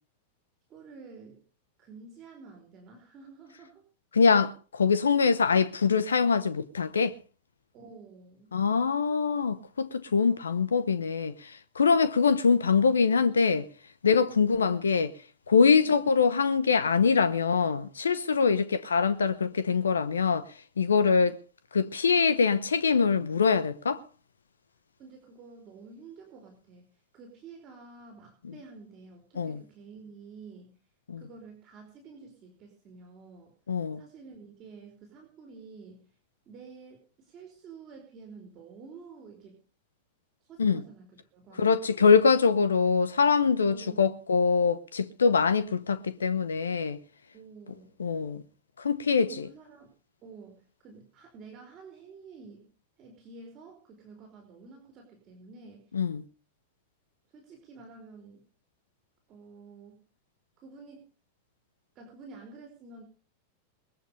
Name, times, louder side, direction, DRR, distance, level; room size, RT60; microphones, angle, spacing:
voice 1, 0.7-1.4 1.8-3.8 7.7-8.6 15.8-16.0 25.0-30.8 31.2-33.5 34.0-36.1 36.5-39.6 40.4-42.1 43.7-44.2 47.3-48.0 49.2-49.9 50.2-52.7 53.0-55.9 57.3-58.5 59.3-60.0 60.6-61.1 61.9-63.0, right 4 dB, 35° right, 4.7 m, -50 dB
voice 2, 4.1-7.2 8.5-13.7 14.0-15.1 15.5-21.3 21.7-24.0 29.4-29.6 31.1-31.2 33.7-34.0 40.6-40.8 41.6-47.0 48.0-48.4 48.8-49.5 55.9-56.2, left 5 dB, 70° left, 1.0 m, -24 dB
22.0 x 8.2 x 5.6 m
figure-of-eight pair, 90°, 0 cm